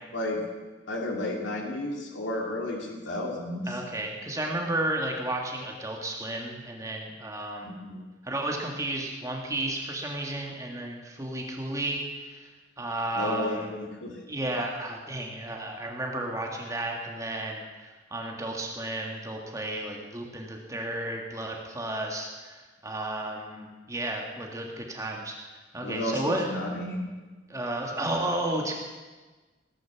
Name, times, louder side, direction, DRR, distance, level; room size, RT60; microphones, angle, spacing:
voice 1, 0.9-3.8 7.6-8.0 13.2-14.2 25.8-27.0, left 1 dB, 80° left, 0 dB, 2.7 m, -32 dB
voice 2, 3.7-7.7 8.2-12.5 12.8-13.7 14.3-25.4 25.7-26.6 27.5-28.7, right 1 dB, 15° right, 0 dB, 1.8 m, -33 dB
18.0 x 11.0 x 7.1 m, 1.3 s
head